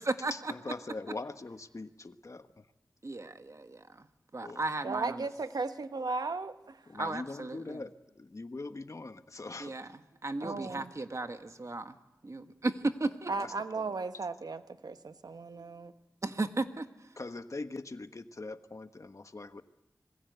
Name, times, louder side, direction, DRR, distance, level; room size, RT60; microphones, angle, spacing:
voice 1, 0.3-2.7 4.4-4.6 6.9-9.9 10.4-10.9 13.0-14.0 17.2-19.6, left 3 dB, 50° left, 1.3 m, -42 dB
voice 2, 3.0-4.1 4.3-5.3 6.9-7.8 9.6-9.9 10.2-12.0 12.2-13.3 16.2-16.9, right 2 dB, 50° right, 1.6 m, -35 dB
voice 3, 4.8-6.9 10.4-10.9 13.3-15.9, right 3 dB, 80° right, 1.2 m, -36 dB
26.5 x 21.5 x 8.2 m
wide cardioid pair, 65°, 7 cm